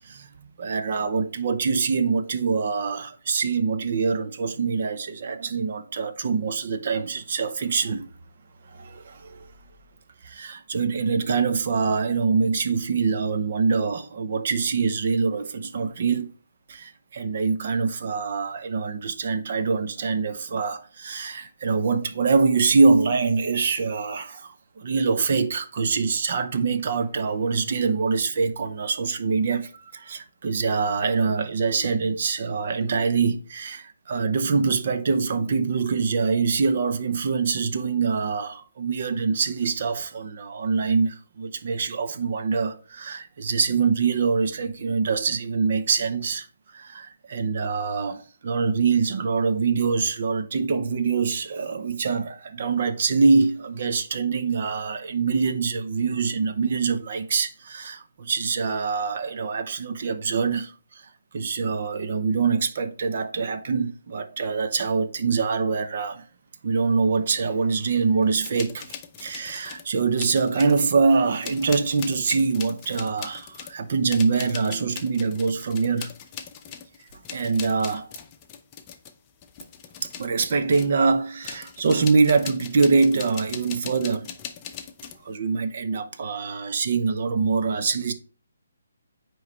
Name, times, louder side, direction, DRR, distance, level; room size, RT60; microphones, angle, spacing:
voice 1, 0.0-8.1 8.6-9.5 10.2-16.3 16.7-46.5 46.7-66.2 66.6-76.1 77.3-78.1 80.0-84.3 85.2-88.1, right 4 dB, 50° right, 0.7 m, -24 dB
sound 1, 68.4-69.9 70.2-71.0 71.4-81.0 81.4-85.3, left 8 dB, 25° left, 0.7 m, -40 dB
9.2 x 3.2 x 3.2 m
figure-of-eight pair, 150°, 0 cm